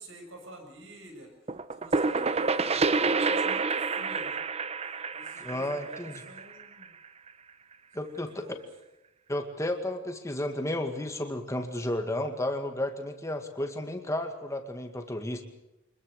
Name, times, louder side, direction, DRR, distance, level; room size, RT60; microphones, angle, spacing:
voice 1, 0.0-4.4 5.1-6.9 8.0-8.6, right 1 dB, 75° right, 4 dB, 6.9 m, -48 dB
sound 1, 1.5-7.0, right 4 dB, 30° right, 0.8 m, -28 dB
voice 2, 5.4-6.1 7.9-8.5 9.3-15.4, left 1 dB, 15° left, 5 dB, 2.1 m, -32 dB
25.5 x 21.5 x 6.6 m, 0.90 s
head